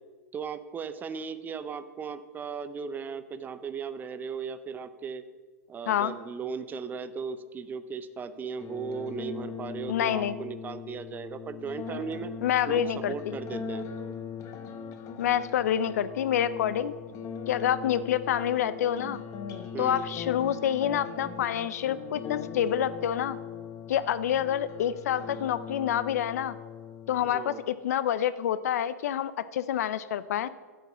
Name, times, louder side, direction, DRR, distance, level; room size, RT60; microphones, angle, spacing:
voice 1, 0.3-5.2 5.7-12.3 12.7-13.9 19.7-20.1 27.2-27.6, right 6 dB, 20° right, 13 dB, 0.5 m, -37 dB
sound 1, 8.6-27.6, left 7 dB, 35° left, 1.1 m, -40 dB
voice 2, 9.9-10.4 12.4-13.4 15.2-16.9 17.5-19.2 19.8-23.4 23.9-26.6 27.1-30.5, left 10 dB, 70° left, 15 dB, 0.5 m, -27 dB
9.3 x 6.0 x 7.0 m, 1.5 s
hypercardioid pair, 110°, 9 cm